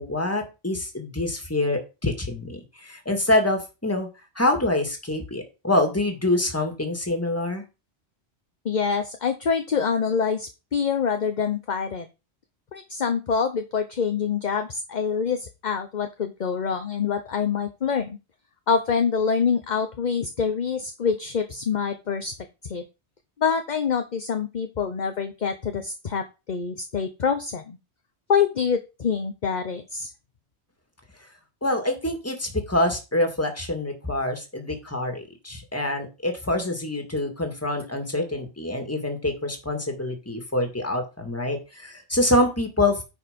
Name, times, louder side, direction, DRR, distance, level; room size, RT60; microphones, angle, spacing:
voice 1, 0.0-4.1 4.4-7.6 31.6-43.0, left 1 dB, 10° left, 4 dB, 2.1 m, -26 dB
voice 2, 8.6-12.1 12.7-18.2 18.7-22.3 22.6-22.8 23.4-27.8 28.3-30.1, left 6 dB, 45° left, 7 dB, 0.9 m, -26 dB
9.7 x 4.8 x 5.2 m, 0.28 s
omnidirectional pair, 1.2 m